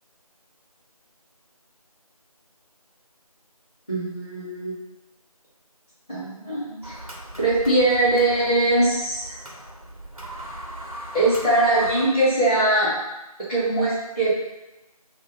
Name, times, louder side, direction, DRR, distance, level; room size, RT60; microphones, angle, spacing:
voice 1, 3.9-4.7 6.1-6.9 7.4-9.3 11.1-12.9 13.5-14.3, right 2 dB, 15° left, -18 dB, 1.2 m, -21 dB
sound 1, 6.8-12.1, right 1 dB, 65° right, 1.2 m, -38 dB
4.4 x 2.8 x 3.7 m, 0.99 s
figure-of-eight pair, 175°, 19 cm